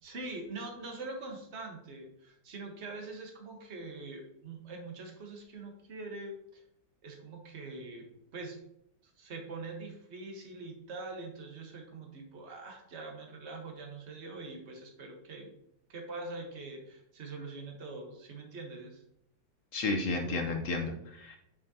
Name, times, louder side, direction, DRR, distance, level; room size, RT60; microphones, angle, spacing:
voice 1, 0.0-6.6 7.0-8.1 8.3-8.6 9.2-15.5 15.9-19.0, right 3 dB, 40° right, 2 dB, 1.4 m, -43 dB
voice 2, 19.7-21.4, left 3 dB, 60° left, 4 dB, 1.0 m, -32 dB
7.2 x 5.4 x 2.8 m, 0.76 s
omnidirectional pair, 1.9 m